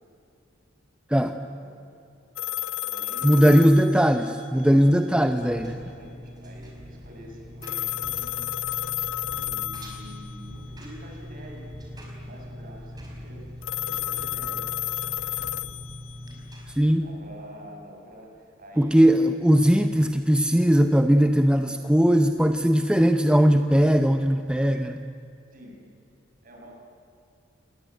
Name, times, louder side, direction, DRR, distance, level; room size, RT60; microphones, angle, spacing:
voice 1, 1.4-1.8 2.8-3.8 4.5-5.0 5.5-8.8 9.2-14.7 15.3-15.7 16.8-19.0 25.5-25.8 26.4-26.7, equal, 45° right, 1 dB, 6.6 m, -47 dB
sound 1, 2.4-4.7 7.6-10.5 13.6-16.6, left 13 dB, 80° left, 0.6 m, -32 dB
voice 2, 3.2-5.8 16.8-17.1 18.8-25.1, equal, 5° right, 7 dB, 0.7 m, -19 dB
Engine, 5.3-16.9, equal, 20° right, 5.3 m, -41 dB
27.5 x 20.5 x 9.4 m, 2.6 s
head